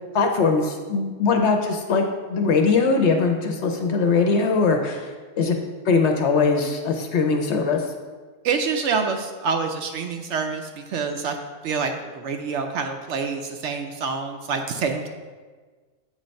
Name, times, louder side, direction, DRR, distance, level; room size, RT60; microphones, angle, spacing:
voice 1, 0.1-5.1 5.4-5.6 5.8-7.8, left 4 dB, 60° left, 4 dB, 0.9 m, -21 dB
voice 2, 8.4-11.4 11.6-15.1, right 5 dB, 65° right, 5 dB, 0.8 m, -27 dB
8.1 x 3.3 x 5.2 m, 1.4 s
omnidirectional pair, 1.4 m